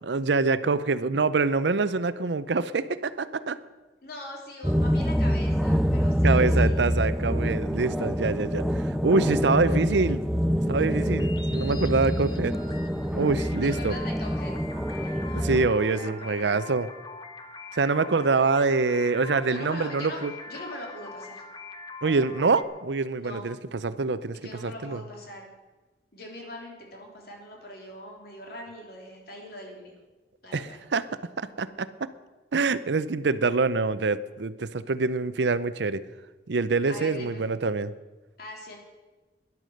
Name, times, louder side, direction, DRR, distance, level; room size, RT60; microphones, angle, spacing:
voice 1, 0.0-3.6 6.2-10.2 10.7-12.5 13.1-14.0 15.4-16.9 17.7-20.3 22.0-23.6 23.8-25.0 30.5-31.0 31.4-31.9 32.5-36.0 36.5-37.9, right 4 dB, 85° right, 15 dB, 0.6 m, -25 dB
voice 2, 4.0-6.8 13.6-14.5 14.9-16.6 19.5-21.4 23.1-23.5 24.3-25.5 26.1-29.9 30.4-30.8 36.9-37.4 38.4-38.8, left 1 dB, 60° left, 0 dB, 3.3 m, -42 dB
sound 1, 4.6-15.7, equal, ahead, 0.4 m, -26 dB
sound 2, 10.9-22.6, left 3 dB, 25° left, 1.1 m, -43 dB
12.5 x 11.0 x 6.5 m, 1.2 s
head